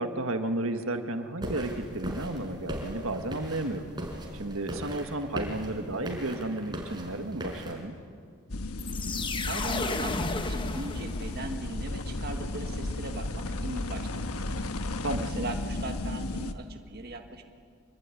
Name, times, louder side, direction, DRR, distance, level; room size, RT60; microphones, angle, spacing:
voice 1, 0.0-3.9 4.3-7.9 15.0-15.5, right 2 dB, 65° right, 6 dB, 1.7 m, -33 dB
sound 1, 1.4-7.8, right 1 dB, 20° right, 4.6 m, -38 dB
sound 2, 8.5-16.5, left 2 dB, 80° left, 1.2 m, -34 dB
sound 3, 8.8-11.6, left 3 dB, 20° left, 1.0 m, -33 dB
voice 2, 9.1-17.4, right 2 dB, 45° right, 4 dB, 1.7 m, -40 dB
25.5 x 22.0 x 9.8 m, 2.2 s
head